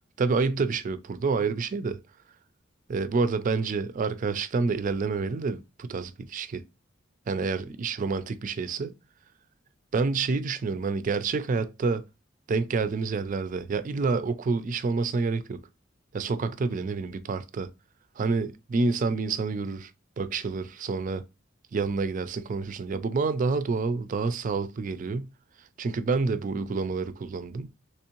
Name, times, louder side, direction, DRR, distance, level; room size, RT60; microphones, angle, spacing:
voice 1, 0.2-2.0 2.9-6.6 7.3-8.9 9.9-12.0 12.5-15.6 16.1-17.7 18.2-19.9 20.2-21.2 21.7-25.3 25.8-27.7, right 4 dB, 40° right, 0.3 m, -28 dB
3.5 x 3.1 x 2.9 m
head